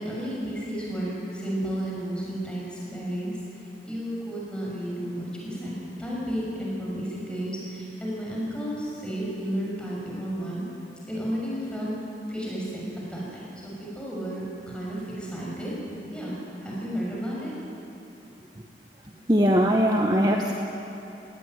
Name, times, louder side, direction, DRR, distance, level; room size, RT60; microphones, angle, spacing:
voice 1, 0.0-3.4 3.8-5.7 6.0-10.6 11.1-11.9 12.3-12.8 13.1-15.7 16.1-17.5, equal, 5° left, -5 dB, 6.5 m, -32 dB
voice 2, 19.3-20.5, equal, 25° right, 2 dB, 1.0 m, -20 dB
19.5 x 17.5 x 9.4 m, 2.9 s
head